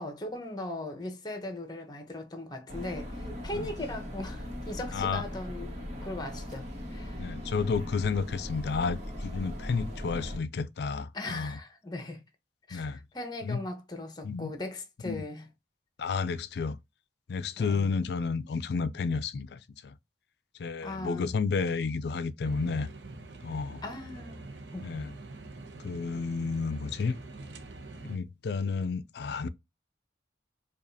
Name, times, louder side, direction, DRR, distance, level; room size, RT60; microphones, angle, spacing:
voice 1, 0.0-5.7 6.0-7.2 11.1-12.2 12.7-15.5 17.6-17.9 20.8-21.3 23.8-24.4 24.7-24.9, left 2 dB, 25° left, 0.9 m, -39 dB
sound 1, 2.7-10.4, equal, 40° right, 1.3 m, -39 dB
voice 2, 4.9-5.2 7.2-11.6 12.7-13.0 13.4-13.6 14.2-14.5 15.0-15.3 16.0-16.8 17.3-19.9 20.6-22.9 23.4-23.8 24.8-25.1 25.8-27.2 28.0-29.5, left 4 dB, 60° left, 0.4 m, -31 dB
sound 2, 22.4-28.2, right 2 dB, 80° right, 0.7 m, -45 dB
4.9 x 2.4 x 2.7 m
head